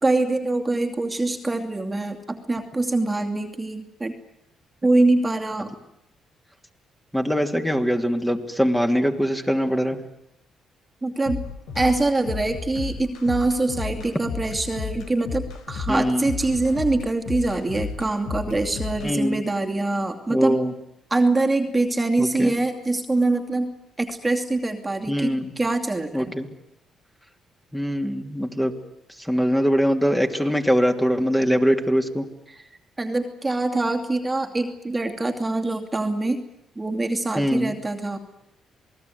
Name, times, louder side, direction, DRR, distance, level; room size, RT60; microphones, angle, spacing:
voice 1, 0.0-4.1 4.8-5.7 11.0-11.4 11.7-20.6 21.1-23.7 24.0-26.3 32.5-32.6 33.0-36.4 36.8-38.2, right 2 dB, 20° right, 4 dB, 2.6 m, -24 dB
voice 2, 7.1-10.0 15.9-16.3 19.0-19.4 20.3-20.7 22.2-22.5 25.1-25.5 26.1-26.5 27.7-28.7 29.2-32.3 37.4-37.7, equal, 5° left, 4 dB, 3.0 m, -22 dB
sound 1, 11.3-19.1, left 5 dB, 85° left, 4.0 m, -32 dB
28.0 x 19.5 x 9.5 m, 0.81 s
cardioid pair, 90°, 0 cm